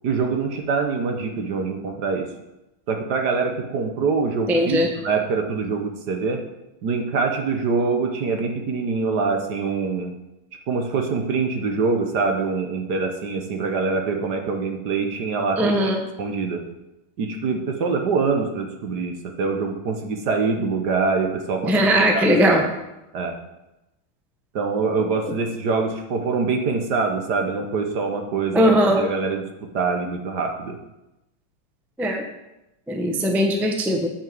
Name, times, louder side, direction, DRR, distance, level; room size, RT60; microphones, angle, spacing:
voice 1, 0.0-2.3 2.9-6.4 6.8-10.1 10.7-15.9 16.2-16.6 17.2-21.7 22.1-22.6 23.1-23.3 24.5-29.5 29.7-30.8, right 4 dB, 55° right, 3 dB, 1.5 m, -24 dB
voice 2, 4.5-4.9 15.6-16.0 21.7-22.6 28.5-29.0 32.0-32.2 32.9-34.1, equal, ahead, 3 dB, 0.7 m, -19 dB
9.0 x 5.8 x 7.7 m, 0.94 s
omnidirectional pair, 2.3 m